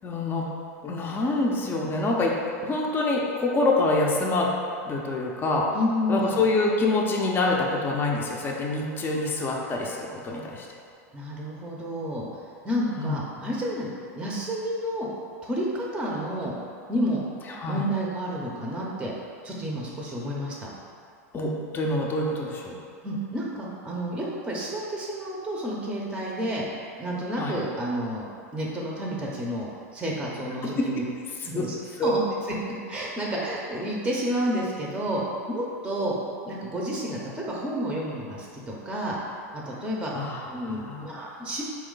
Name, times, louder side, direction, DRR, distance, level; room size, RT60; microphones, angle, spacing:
voice 1, 0.0-0.5 0.8-2.3 2.6-4.5 4.8-5.7 6.1-10.7 13.0-13.5 17.6-17.8 21.3-22.8 27.4-27.5 30.6-30.9 31.6-31.7 32.0-32.1 40.1-41.2, left 2 dB, 25° left, -2 dB, 0.6 m, -26 dB
voice 2, 5.7-6.5 11.1-12.3 12.6-13.9 14.2-15.1 15.4-16.5 16.9-17.2 17.7-19.1 19.4-20.7 23.0-26.6 27.0-28.3 28.5-31.0 31.4-31.8 32.0-32.2 32.7-36.2 36.4-39.2 39.5-41.6, equal, 10° right, -3 dB, 0.7 m, -30 dB
4.3 x 3.1 x 3.8 m, 2.4 s
hypercardioid pair, 110°, 9 cm